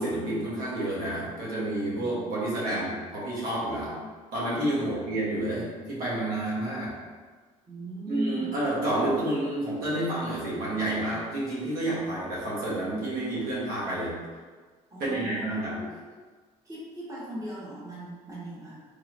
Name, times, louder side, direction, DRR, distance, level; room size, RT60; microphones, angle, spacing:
voice 1, 0.0-3.9 4.3-6.9 8.1-14.1 15.0-15.8, right 1 dB, 70° right, -7 dB, 1.2 m, -29 dB
voice 2, 7.7-8.5 14.9-15.5 15.8-16.0 16.6-18.8, right 1 dB, 20° right, -7 dB, 1.2 m, -38 dB
3.2 x 2.8 x 2.5 m, 1.4 s
supercardioid pair, 70°, 16 cm